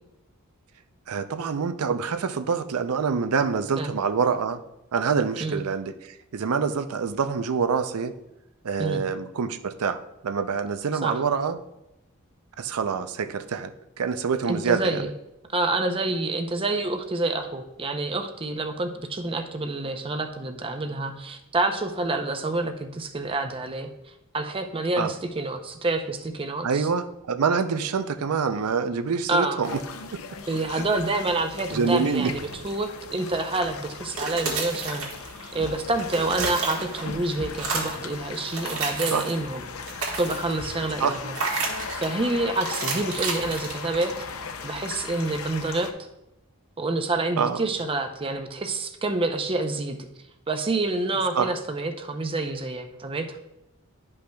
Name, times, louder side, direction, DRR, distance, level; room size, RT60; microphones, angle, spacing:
voice 1, 1.1-4.6 4.9-8.1 8.6-11.6 12.6-13.7 14.0-15.1 25.0-25.1 26.6-29.8 30.1-30.2 30.7-30.8 31.7-32.3 39.1-39.2 41.0-41.2 47.4-47.6 51.4-51.5, right 5 dB, 85° right, 10 dB, 0.5 m, -26 dB
voice 2, 14.5-15.1 15.5-23.9 24.3-26.9 29.3-29.6 30.5-35.1 35.5-39.6 40.2-41.4 41.9-44.1 44.6-45.9 46.8-50.0 50.5-53.4, right 2 dB, 25° right, 6 dB, 0.6 m, -28 dB
sound 1, 29.6-45.9, left 5 dB, 75° left, 0.6 m, -38 dB
sound 2, 34.0-35.6 35.9-37.1 37.5-38.1 38.5-39.4 39.8-40.6 41.3-42.2 42.6-44.3, right 4 dB, 70° right, 1.7 m, -31 dB
11.5 x 5.3 x 2.3 m, 0.88 s
head